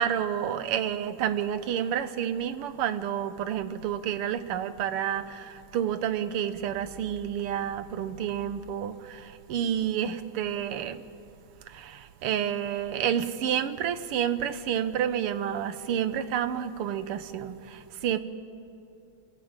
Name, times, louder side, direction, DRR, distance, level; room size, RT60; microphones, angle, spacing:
voice 1, 0.0-11.0 11.7-18.2, right 9 dB, 85° right, 12 dB, 1.9 m, -29 dB
26.5 x 17.5 x 8.9 m, 2.6 s
omnidirectional pair, 2.4 m